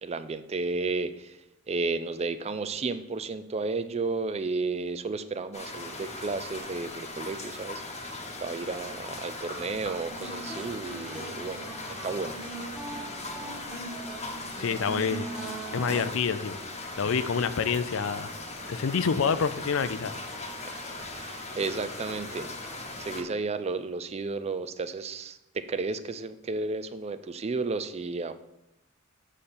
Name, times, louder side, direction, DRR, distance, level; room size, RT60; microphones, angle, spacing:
voice 1, 0.0-1.4 1.7-11.7 12.0-12.4 15.8-16.1 20.6-28.4, right 3 dB, 30° right, 11 dB, 0.4 m, -33 dB
sound 1, 5.5-23.2, left 2 dB, 30° left, 1.1 m, -39 dB
sound 2, 10.1-16.0, right 2 dB, 5° right, 1.4 m, -40 dB
voice 2, 14.6-15.3 15.7-16.6 17.0-18.3 18.7-20.1, left 6 dB, 65° left, 13 dB, 0.5 m, -27 dB
7.4 x 6.6 x 4.3 m, 0.86 s
head